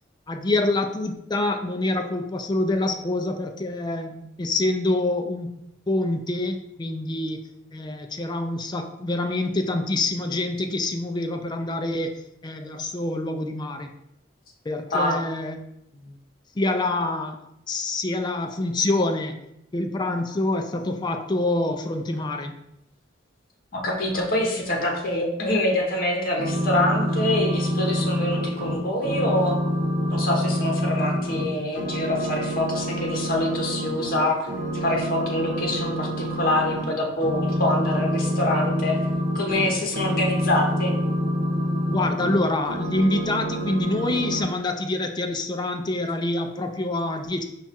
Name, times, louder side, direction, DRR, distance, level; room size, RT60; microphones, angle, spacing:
voice 1, 0.3-7.5 7.7-13.9 14.7-15.6 16.0-16.2 16.6-17.4 17.7-19.4 19.7-22.6 41.9-47.4, left 2 dB, 20° left, 5 dB, 0.4 m, -26 dB
voice 2, 23.7-29.6 30.1-34.4 34.8-39.0 39.3-40.9, left 1 dB, 50° left, 0 dB, 0.9 m, -25 dB
sound 1, 26.4-31.5 31.7-34.2 34.5-36.8 37.2-42.4 42.6-44.4, equal, 50° right, 1.0 m, -26 dB
4.8 x 2.4 x 4.1 m, 0.82 s
head